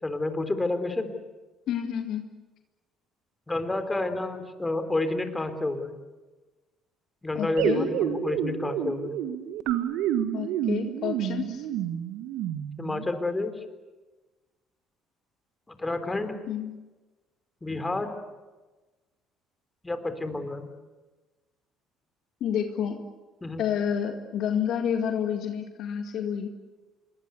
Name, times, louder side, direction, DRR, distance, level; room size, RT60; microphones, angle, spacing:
voice 1, 0.0-1.1 3.5-6.0 7.2-9.1 12.8-13.6 15.7-16.4 17.6-18.1 19.8-20.7 23.4-23.6, left 2 dB, 15° left, 9 dB, 3.7 m, -29 dB
voice 2, 1.7-2.2 7.3-7.9 10.3-11.7 16.5-16.8 22.4-23.0 23.6-26.5, left 8 dB, 60° left, 6 dB, 1.9 m, -29 dB
sound 1, 7.6-13.0, right 10 dB, 70° right, 1.7 m, -29 dB
27.0 x 22.5 x 8.3 m, 1.2 s
hypercardioid pair, 55°, 0 cm